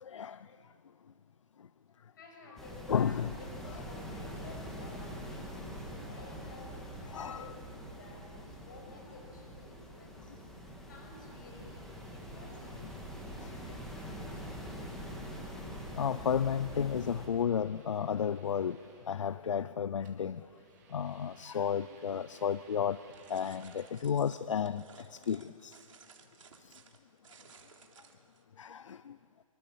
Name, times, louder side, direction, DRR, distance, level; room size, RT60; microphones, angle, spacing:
voice 1, 0.0-0.4 2.9-3.3 7.1-7.5 13.4-13.8 16.0-18.8 19.1-20.4 20.9-23.0 23.3-25.8 28.6-29.2, left 8 dB, 60° left, 16 dB, 0.6 m, -33 dB
voice 2, 2.1-10.4 10.9-12.8, left 3 dB, 35° left, 2 dB, 6.7 m, -53 dB
sound 1, 2.6-17.3, equal, ahead, 1.9 m, -44 dB
sound 2, 11.1-23.9, right 5 dB, 30° right, 3.7 m, -62 dB
sound 3, 23.1-28.4, right 5 dB, 65° right, 3.4 m, -58 dB
26.5 x 25.0 x 7.5 m, 2.6 s
hypercardioid pair, 175°, 18 cm